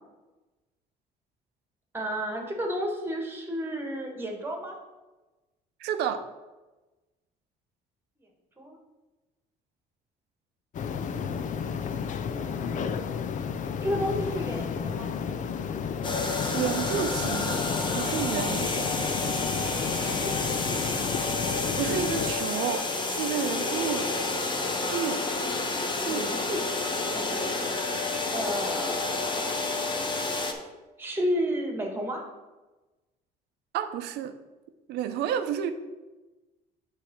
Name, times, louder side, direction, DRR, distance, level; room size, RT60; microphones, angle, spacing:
voice 1, 1.9-4.7 8.6-8.8 12.3-13.0 13.8-15.1 20.1-21.2 26.1-27.8 28.3-29.5 31.0-32.2, equal, 15° right, 2 dB, 1.6 m, -32 dB
voice 2, 5.8-6.2 16.5-17.6 17.9-19.2 21.8-24.1 24.9-25.2 26.0-26.3 33.7-34.3 34.9-35.7, right 9 dB, 80° right, 10 dB, 0.7 m, -31 dB
sound 1, 10.7-22.3, left 6 dB, 50° left, 0.6 m, -32 dB
sound 2, 16.0-30.5, left 3 dB, 30° left, 1.0 m, -30 dB
8.3 x 3.4 x 5.9 m, 1.1 s
cardioid pair, 110°, 17 cm